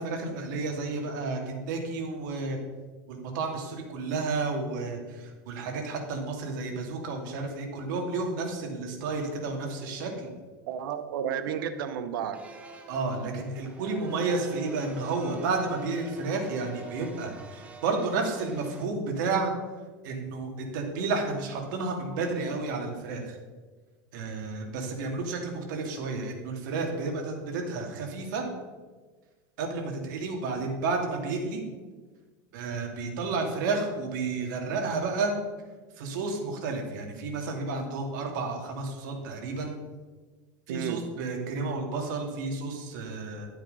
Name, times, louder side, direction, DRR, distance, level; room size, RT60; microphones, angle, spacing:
voice 1, 0.0-2.6 3.1-10.3 12.9-19.5 20.0-23.4 24.1-28.5 29.6-31.6 32.5-35.3 36.0-39.8 40.7-43.5, right 3 dB, 65° right, 1 dB, 2.9 m, -31 dB
voice 2, 10.7-12.5 40.7-41.1, right 8 dB, 90° right, 11 dB, 1.2 m, -32 dB
sound 1, 12.3-18.8, right 2 dB, 10° right, 1.1 m, -45 dB
12.5 x 7.9 x 5.6 m, 1.3 s
supercardioid pair, 170°, 11 cm